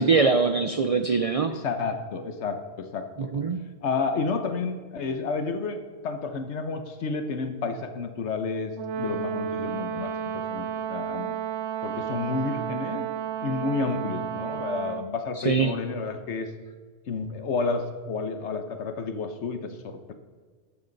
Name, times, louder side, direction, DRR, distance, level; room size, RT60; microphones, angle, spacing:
voice 1, 0.0-1.6 3.3-3.7 15.5-15.7, right 4 dB, 45° right, 8 dB, 0.5 m, -22 dB
voice 2, 1.5-3.4 3.8-11.4 11.8-13.1 13.4-16.5 17.1-20.1, left 4 dB, 85° left, 8 dB, 1.2 m, -31 dB
Brass instrument, 8.8-15.2, right 8 dB, 90° right, 1.0 m, -32 dB
13.5 x 12.5 x 4.0 m, 1.5 s
omnidirectional pair, 1.1 m